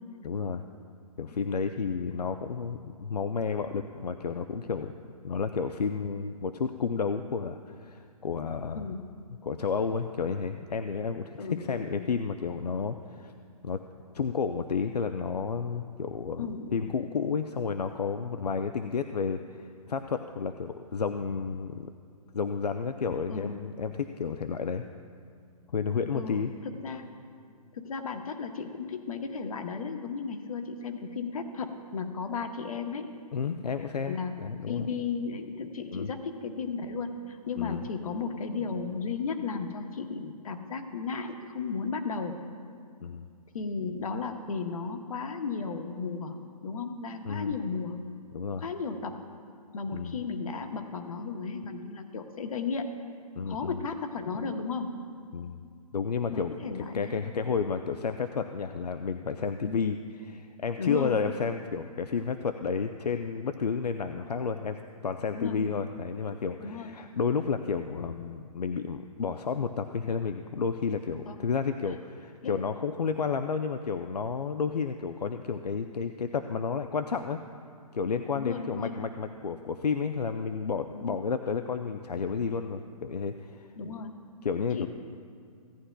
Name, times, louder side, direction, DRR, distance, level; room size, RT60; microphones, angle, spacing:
voice 1, 0.2-0.6 1.2-4.9 5.2-8.9 9.4-13.3 13.6-13.8 14.1-16.5 16.7-21.9 22.3-24.8 25.7-26.5 33.3-34.9 35.9-36.1 37.6-37.8 43.0-43.3 47.2-47.5 48.3-48.6 49.9-50.1 53.4-53.8 55.3-55.6 55.9-56.5 56.9-64.8 65.0-77.4 77.9-83.7 84.4-84.9, left 5 dB, 90° left, 8 dB, 0.5 m, -31 dB
voice 2, 8.7-9.1 11.4-12.2 16.4-17.0 23.3-23.6 26.1-27.1 27.7-33.1 34.1-34.4 34.7-42.4 43.5-46.4 46.6-48.0 48.6-49.2 49.7-53.0 53.4-55.0 56.3-57.2 59.6-59.8 60.8-61.2 65.3-65.9 66.6-66.9 71.3-71.4 71.9-72.0 72.4-72.6 78.3-79.0 80.9-81.2 83.8-84.1 84.7-84.9, left 5 dB, 65° left, 6 dB, 1.0 m, -35 dB
17.0 x 9.8 x 2.2 m, 2.3 s
hypercardioid pair, 140°, 20 cm